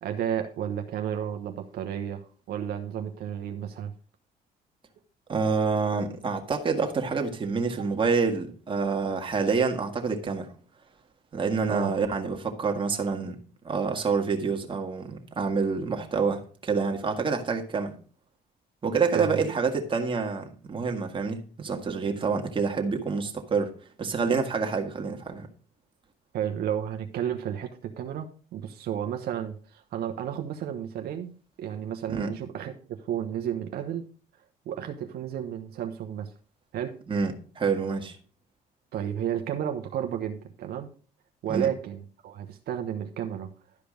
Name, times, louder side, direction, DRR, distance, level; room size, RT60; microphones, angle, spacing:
voice 1, 0.0-3.9 11.7-11.9 19.1-19.4 26.3-31.3 31.6-34.0 34.7-36.3 36.7-37.0 38.9-40.9 41.4-43.5, right 9 dB, 70° right, 1.0 m, -32 dB
voice 2, 5.3-10.5 11.3-13.4 13.6-17.9 18.8-23.7 24.0-25.5 32.1-32.3 37.1-38.2 41.5-41.7, right 5 dB, 30° right, 1.8 m, -27 dB
12.0 x 5.1 x 5.1 m
cardioid pair, 110°, 17 cm